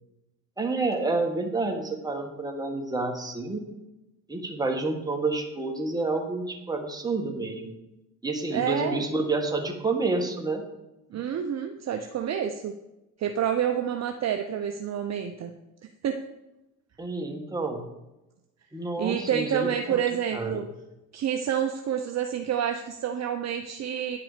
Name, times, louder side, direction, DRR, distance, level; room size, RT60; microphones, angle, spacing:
voice 1, 0.6-3.6 4.3-7.7 8.2-10.6 11.2-11.3 17.0-17.9 18.7-20.0 20.3-20.7, right 3 dB, 10° right, 2 dB, 1.8 m, -29 dB
voice 2, 8.5-9.0 11.1-12.7 13.2-15.5 16.0-16.2 19.0-20.7 21.1-24.2, right 9 dB, 40° right, 5 dB, 0.7 m, -28 dB
9.8 x 5.9 x 5.1 m, 0.96 s
supercardioid pair, 80°, 42 cm